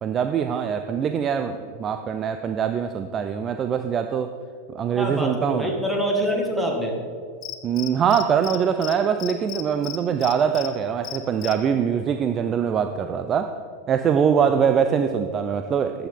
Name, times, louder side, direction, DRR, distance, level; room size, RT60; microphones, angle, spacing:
voice 1, 0.0-4.3 4.7-5.7 7.6-13.5 13.9-16.1, right 7 dB, 25° right, 8 dB, 0.5 m, -23 dB
voice 2, 4.9-6.9 14.1-14.6, equal, 5° right, 0 dB, 2.0 m, -26 dB
Cricket, 7.4-8.6 8.8-8.9 9.2-10.7 11.0-11.5, left 14 dB, 35° left, 0.9 m, -33 dB
13.5 x 9.9 x 3.7 m, 2.2 s
figure-of-eight pair, 90°, 0 cm